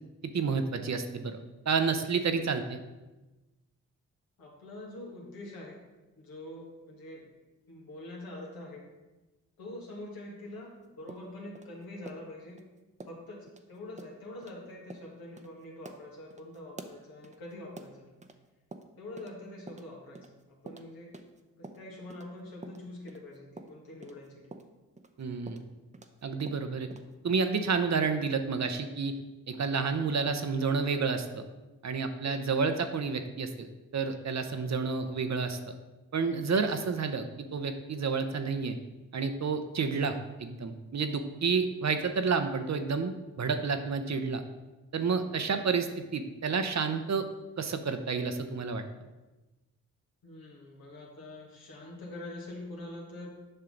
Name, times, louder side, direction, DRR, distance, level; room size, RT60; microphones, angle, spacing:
voice 1, 0.3-2.8 25.2-25.7 26.2-26.9 27.2-29.1 29.5-31.5 31.8-33.7 33.9-35.7 36.1-37.2 37.5-38.8 39.1-44.4 44.9-47.3 47.6-48.8, right 5 dB, 50° right, 8 dB, 0.8 m, -30 dB
voice 2, 4.4-5.8 6.2-7.3 7.7-8.9 9.6-12.6 13.1-18.1 19.0-21.2 21.6-24.5 32.2-32.4 50.2-53.3, left 1 dB, 75° left, -2 dB, 2.1 m, -45 dB
sound 1, 11.1-12.6 13.0-13.2 13.5-13.6 14.0-14.1 14.4-14.6 14.9-15.1 15.4-15.5 15.8-18.4 18.7-19.4 19.7-22.3 22.6-26.2 26.5-27.1, right 3 dB, 20° right, 0.7 m, -48 dB
7.8 x 5.6 x 3.9 m, 1.1 s
supercardioid pair, 45°, 37 cm